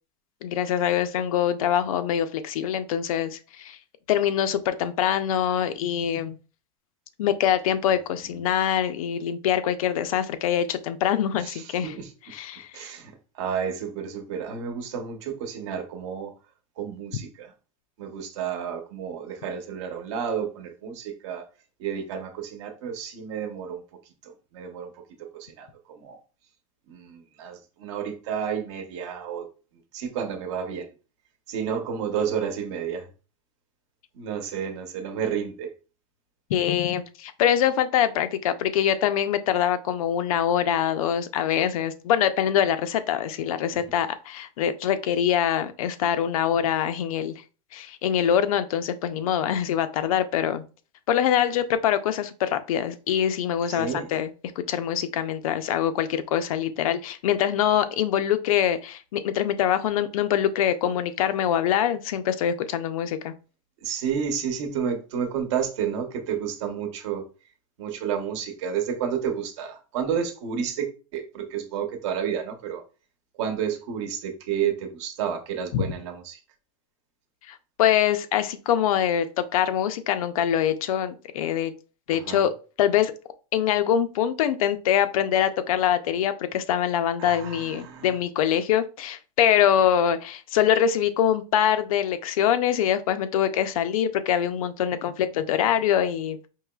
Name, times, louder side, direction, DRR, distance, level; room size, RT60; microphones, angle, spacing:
voice 1, 0.4-3.8 4.1-6.4 7.2-12.0 12.3-12.9 36.5-47.4 47.7-50.6 51.1-54.3 54.6-63.3 75.7-75.8 77.5-81.7 82.1-82.5 82.8-83.1 83.5-96.4, left 10 dB, 80° left, 0.5 m, -24 dB
voice 2, 11.4-12.1 12.7-16.3 16.8-17.5 18.0-21.5 21.8-23.8 24.2-24.9 25.2-26.2 26.9-29.5 29.9-30.9 31.5-33.0 34.2-35.7 43.7-43.8 53.7-54.1 63.8-67.2 67.8-72.8 73.4-76.4 82.1-82.4 87.2-88.1, right 7 dB, 55° right, 0.9 m, -31 dB
4.7 x 2.9 x 2.3 m
supercardioid pair, 165°, 18 cm